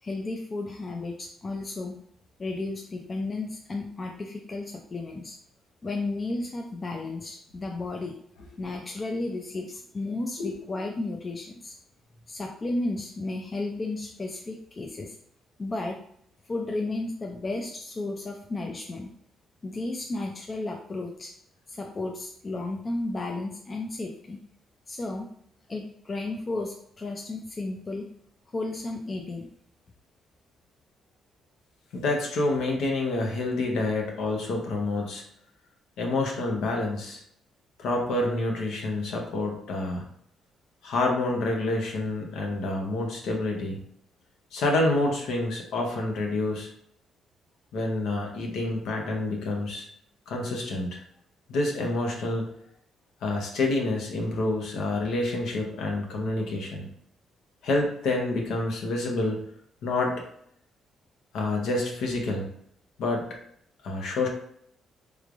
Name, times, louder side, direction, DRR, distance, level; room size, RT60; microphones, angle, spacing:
voice 1, 0.0-2.0 2.4-5.4 5.8-8.2 8.6-11.8 12.3-15.2 15.6-16.0 16.4-19.1 19.6-21.3 21.7-24.4 24.9-25.3 25.7-28.1 28.5-29.5, left 2 dB, 35° left, 1 dB, 0.4 m, -33 dB
voice 2, 31.9-35.2 36.0-37.2 37.8-40.0 40.8-43.8 44.5-46.7 47.7-49.9 50.3-51.0 51.5-52.5 53.2-56.9 57.6-59.4 59.8-60.2 61.3-62.5 63.0-63.3 63.8-64.3, left 2 dB, 80° left, 1 dB, 0.8 m, -28 dB
3.5 x 3.2 x 2.5 m, 0.67 s
cardioid pair, 90°, 0 cm